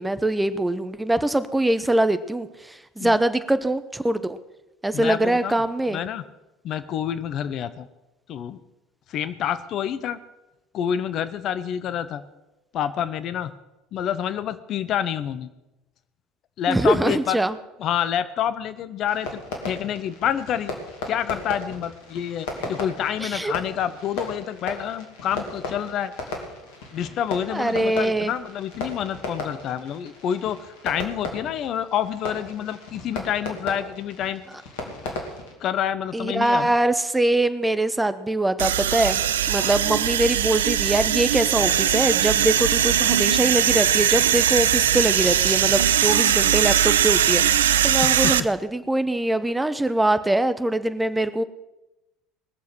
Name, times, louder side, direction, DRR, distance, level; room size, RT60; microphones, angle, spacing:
voice 1, 0.0-4.4 4.8-6.0 16.7-17.5 23.2-23.5 27.5-28.3 36.1-39.2 39.5-51.4, right 1 dB, 10° right, 12 dB, 0.9 m, -23 dB
voice 2, 4.9-5.5 5.9-6.2 6.6-7.9 8.3-8.6 9.1-10.2 10.7-12.2 12.7-13.5 13.9-15.5 16.6-17.4 17.8-19.4 19.7-20.7 21.1-26.1 26.9-34.4 35.0-35.1 35.6-36.7 48.0-48.3, left 9 dB, 50° left, 13 dB, 0.7 m, -28 dB
Fireworks, 19.0-35.5, left 3 dB, 65° left, 2.5 m, -36 dB
sound 1, 38.6-48.4, right 10 dB, 75° right, 0.4 m, -20 dB
20.5 x 7.1 x 6.1 m, 0.98 s
figure-of-eight pair, 65°, 0 cm